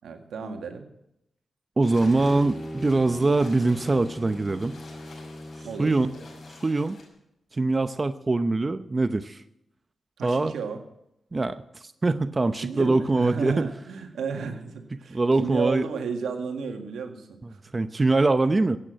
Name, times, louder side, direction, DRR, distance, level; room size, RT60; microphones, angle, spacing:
voice 1, 0.0-0.9 5.6-5.9 10.2-10.8 12.6-17.6, right 5 dB, 85° right, 5 dB, 1.9 m, -33 dB
sound 1, 1.8-7.1, left 2 dB, 60° left, 5.6 m, -48 dB
voice 2, 1.8-4.8 5.6-6.1 6.6-7.0 7.5-9.4 10.2-10.5 11.3-13.7 14.9-15.8 17.4-18.8, right 3 dB, 35° right, 11 dB, 0.7 m, -23 dB
Bowed string instrument, 1.9-6.7, equal, 10° left, 2.4 m, -40 dB
15.5 x 8.7 x 7.7 m, 0.82 s
cardioid pair, 60°, 0 cm